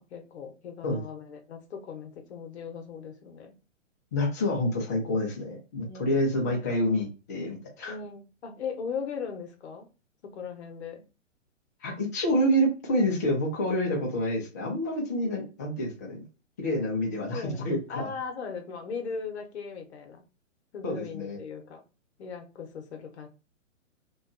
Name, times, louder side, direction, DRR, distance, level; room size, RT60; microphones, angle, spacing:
voice 1, 0.0-3.5 5.8-6.2 6.5-6.6 7.8-9.9 10.2-11.0 17.3-20.2 20.7-21.8 22.2-23.3, left 6 dB, 55° left, 0.8 m, -38 dB
voice 2, 4.1-8.0 11.8-16.2 16.6-18.1 20.8-21.4, equal, 15° left, 0.3 m, -28 dB
2.6 x 2.2 x 2.5 m
figure-of-eight pair, 125°, 39 cm